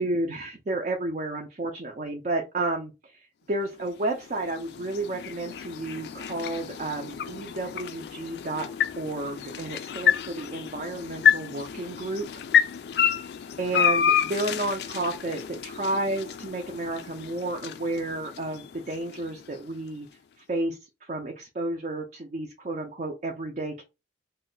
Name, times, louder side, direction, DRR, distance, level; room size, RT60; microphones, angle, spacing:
voice 1, 0.0-2.9 3.5-8.7 9.0-12.3 13.6-20.1 20.5-23.8, right 2 dB, 40° right, 1 dB, 0.5 m, -31 dB
sound 1, 3.7-19.9, left 8 dB, 60° left, 0.3 m, -29 dB
2.7 x 2.1 x 3.8 m, 0.26 s
head